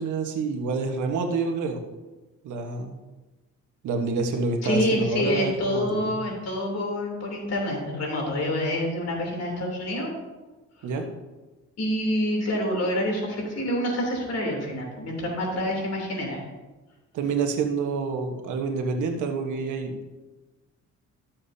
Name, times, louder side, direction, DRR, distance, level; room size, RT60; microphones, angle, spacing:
voice 1, 0.0-1.8 2.4-3.0 3.8-6.2 10.8-11.0 17.1-20.1, right 4 dB, 75° right, 4 dB, 1.3 m, -28 dB
voice 2, 4.6-10.1 10.8-10.9 11.8-16.4, left 1 dB, 55° left, -1 dB, 3.2 m, -27 dB
13.0 x 7.3 x 2.8 m, 1.1 s
cardioid pair, 90°, 30 cm